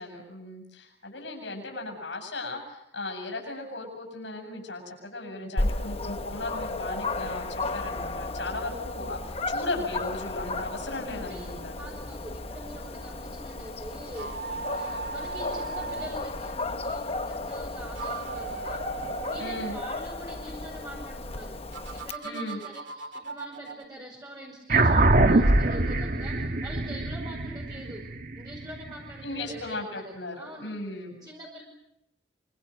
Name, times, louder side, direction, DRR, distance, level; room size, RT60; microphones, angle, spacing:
voice 1, 0.0-11.8 19.4-19.8 22.2-22.6 29.2-31.2, left 2 dB, 75° left, 2 dB, 7.7 m, -36 dB
Dog, 5.6-22.1, left 2 dB, 30° left, 1.0 m, -34 dB
voice 2, 11.1-18.8 19.3-28.0 28.4-30.0 30.3-30.8 31.2-31.6, equal, 20° right, -3 dB, 5.5 m, -44 dB
sound 1, 14.1-16.1 17.8-19.8 21.7-23.9, right 4 dB, 85° right, 2.3 m, -38 dB
sound 2, 24.7-29.5, right 2 dB, 45° right, 1.3 m, -23 dB
25.5 x 25.5 x 6.6 m, 0.83 s
head